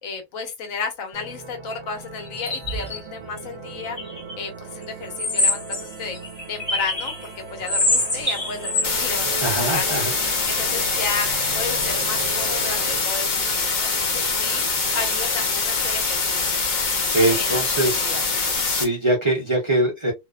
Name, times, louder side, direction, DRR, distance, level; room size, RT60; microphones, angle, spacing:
voice 1, 0.0-4.0 4.4-6.2 6.5-11.3 11.5-14.6 14.9-16.5 17.3-18.2, left 5 dB, 80° left, 1.2 m, -33 dB
sound 1, 1.1-13.0, right 5 dB, 65° right, 0.9 m, -38 dB
sound 2, 2.3-3.0 4.0-4.3 5.2-7.3 7.7-8.9, left 2 dB, 20° left, 1.0 m, -24 dB
sound 3, 8.8-18.8, left 4 dB, 45° left, 0.7 m, -24 dB
voice 2, 9.4-10.5 16.8-18.0 18.6-20.1, right 1 dB, 25° right, 0.8 m, -23 dB
2.8 x 2.0 x 2.3 m
omnidirectional pair, 1.4 m